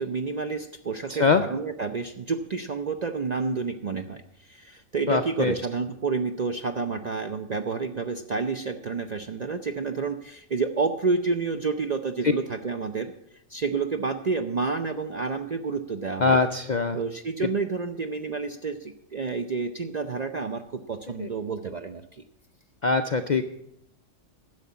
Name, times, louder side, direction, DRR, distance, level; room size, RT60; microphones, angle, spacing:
voice 1, 0.0-4.2 4.5-13.1 13.5-16.4 16.9-22.2, right 4 dB, 50° right, 7 dB, 0.5 m, -29 dB
voice 2, 1.1-1.4 5.1-5.6 16.2-17.0 17.4-17.5 21.2-21.3 22.8-23.4, left 4 dB, 55° left, 8 dB, 0.5 m, -23 dB
10.5 x 6.7 x 8.4 m, 0.77 s
omnidirectional pair, 1.3 m